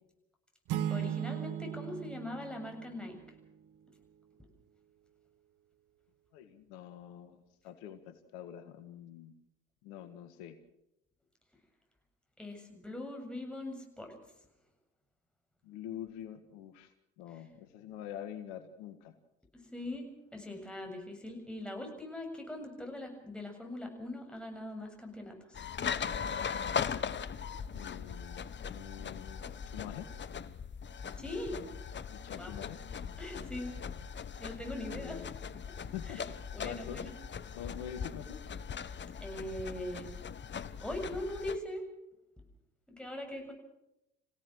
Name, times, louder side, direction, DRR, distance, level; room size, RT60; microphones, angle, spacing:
sound 1, 0.7-3.5, right 10 dB, 60° right, 1.5 m, -37 dB
voice 1, 0.9-3.2 12.4-14.2 19.5-25.6 31.2-31.6 32.4-32.5 33.2-33.7 34.4-35.3 36.0-36.2 36.5-37.1 39.2-40.1 40.8-41.8 42.9-43.5, left 1 dB, 5° left, 2 dB, 7.4 m, -41 dB
voice 2, 6.3-9.3 9.8-10.6 15.6-16.9 17.2-19.1 27.7-30.1 32.1-32.8 34.9-35.3 35.9-37.1 37.5-38.5, left 10 dB, 75° left, 9 dB, 1.8 m, -45 dB
sound 2, 25.5-41.6, left 7 dB, 30° left, 1.1 m, -40 dB
27.5 x 16.5 x 6.3 m, 0.86 s
hypercardioid pair, 60°, 34 cm